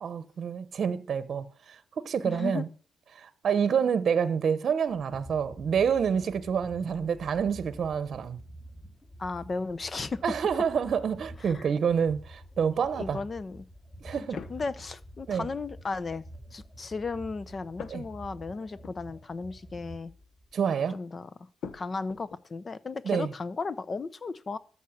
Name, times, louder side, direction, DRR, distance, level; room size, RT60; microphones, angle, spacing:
voice 1, 0.0-1.8 2.0-2.7 3.1-8.4 10.2-13.2 14.0-14.4 15.3-15.4 17.9-18.0 20.5-21.0 23.0-23.3, right 7 dB, 50° right, 0.9 m, -28 dB
voice 2, 2.2-2.6 9.2-10.2 11.4-11.7 12.9-13.7 14.2-16.2 16.5-20.1 20.9-21.5 21.7-24.6, left 4 dB, 35° left, 0.8 m, -35 dB
sound 1, 4.9-20.5, right 1 dB, 15° left, 2.0 m, -48 dB
sound 2, 14.3-15.2 17.8-19.3 19.6-19.8 21.6-22.4, left 6 dB, 65° left, 1.0 m, -45 dB
13.0 x 5.6 x 7.3 m
cardioid pair, 100°, 0 cm